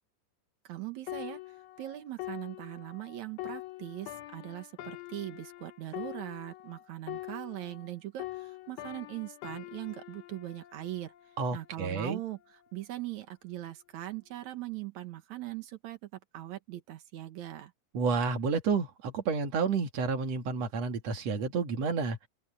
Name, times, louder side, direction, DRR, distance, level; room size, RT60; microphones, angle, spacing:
voice 1, 0.6-17.7, right 14 dB, 75° right, 1.7 m, -41 dB
sound 1, 1.1-7.9 8.2-11.8 12.4-12.6, left 17 dB, 80° left, 3.6 m, -44 dB
voice 2, 11.4-12.2 17.9-22.2, right 5 dB, 45° right, 2.5 m, -30 dB
open air
omnidirectional pair, 5.3 m